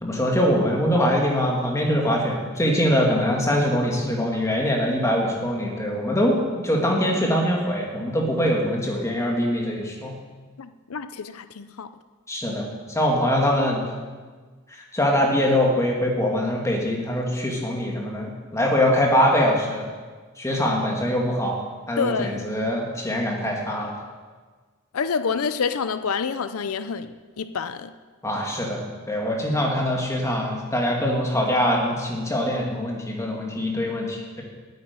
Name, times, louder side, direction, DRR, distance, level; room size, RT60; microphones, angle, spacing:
voice 1, 0.0-6.4 6.6-10.2 12.3-13.9 14.9-19.9 20.4-21.6 21.9-23.9 28.2-28.8 29.1-34.4, equal, 15° left, -1 dB, 2.2 m, -23 dB
voice 2, 10.6-11.9 22.0-22.4 24.9-27.9, left 5 dB, 80° left, 11 dB, 0.6 m, -28 dB
9.2 x 9.0 x 9.5 m, 1.4 s
head